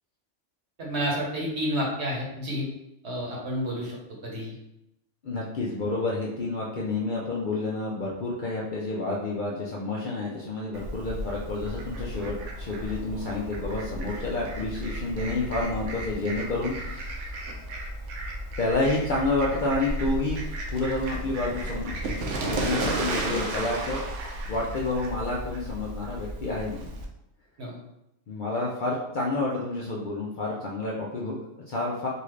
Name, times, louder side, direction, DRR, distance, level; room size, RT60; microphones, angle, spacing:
voice 1, 0.8-2.7 3.0-4.0 4.2-4.5 27.6-27.8, equal, 60° right, -3 dB, 1.3 m, -30 dB
voice 2, 5.2-17.3 18.6-20.4 20.7-22.0 22.4-24.0 24.5-26.9 28.3-32.1, left 2 dB, 55° left, -4 dB, 0.6 m, -29 dB
Fowl, 10.7-27.0, right 1 dB, 80° right, 1.0 m, -34 dB
3.9 x 2.4 x 3.1 m, 0.84 s
omnidirectional pair, 1.3 m